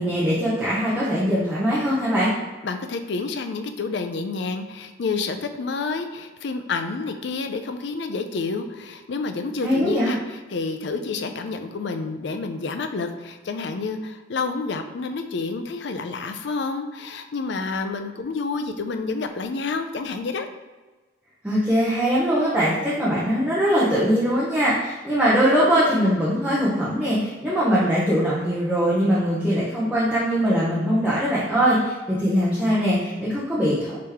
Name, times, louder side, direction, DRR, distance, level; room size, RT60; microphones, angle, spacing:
voice 1, 0.0-2.3 9.6-10.1 21.4-34.0, equal, 5° right, -10 dB, 0.8 m, -21 dB
voice 2, 2.6-20.5, left 4 dB, 55° left, 7 dB, 0.4 m, -29 dB
4.8 x 3.0 x 3.5 m, 1.3 s
head